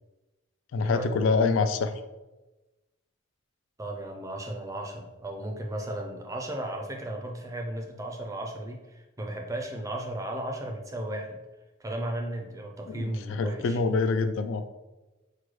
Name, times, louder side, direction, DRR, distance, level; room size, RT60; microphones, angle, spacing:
voice 1, 0.7-1.9 12.9-14.7, left 4 dB, 65° left, 10 dB, 0.3 m, -26 dB
voice 2, 3.8-11.4 11.8-13.8, right 1 dB, 15° right, 2 dB, 0.4 m, -35 dB
6.0 x 2.2 x 3.1 m, 1.1 s
head